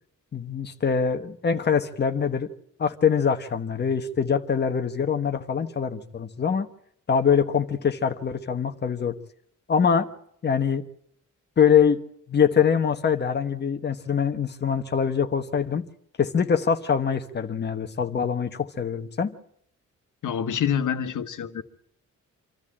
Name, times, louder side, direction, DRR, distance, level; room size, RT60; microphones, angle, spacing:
voice 1, 0.3-2.5 2.8-6.7 7.1-9.1 9.7-10.1 10.4-10.8 11.6-12.0 12.3-15.9 16.2-19.3, left 7 dB, 35° left, 7 dB, 1.2 m, -23 dB
voice 2, 20.2-21.6, left 8 dB, 75° left, 10 dB, 1.4 m, -26 dB
26.5 x 13.5 x 8.7 m, 0.71 s
wide cardioid pair, 180°, 31 cm